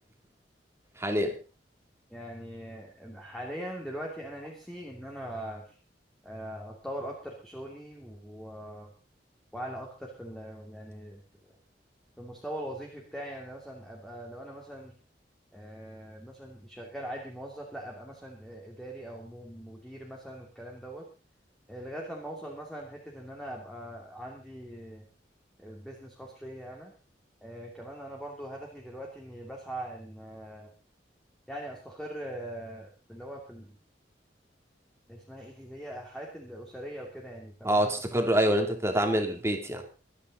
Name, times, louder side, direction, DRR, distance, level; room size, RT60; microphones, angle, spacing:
voice 1, 1.0-1.3 37.6-39.8, right 1 dB, 15° right, 5 dB, 2.8 m, -26 dB
voice 2, 2.1-5.7 6.2-8.9 9.5-11.2 12.2-14.9 15.5-21.1 21.7-25.1 25.6-26.9 27.4-30.7 31.5-33.8 35.1-37.9, right 1 dB, ahead, -1 dB, 2.9 m, -41 dB
25.0 x 9.8 x 4.0 m, 0.33 s
head